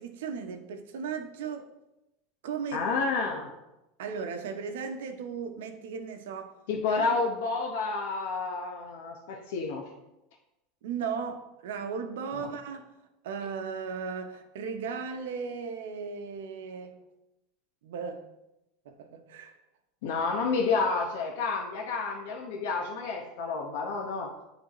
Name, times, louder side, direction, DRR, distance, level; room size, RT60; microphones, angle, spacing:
voice 1, 0.0-1.7 2.4-2.9 4.0-6.6 7.0-7.1 10.8-12.9 13.2-17.0 17.8-18.2 18.8-19.6, right 6 dB, 80° right, 0.7 m, -36 dB
voice 2, 2.7-3.5 6.7-9.8 12.4-12.5 20.0-24.3, left 4 dB, 75° left, 0.9 m, -30 dB
9.4 x 3.4 x 3.0 m
supercardioid pair, 115°, 0 cm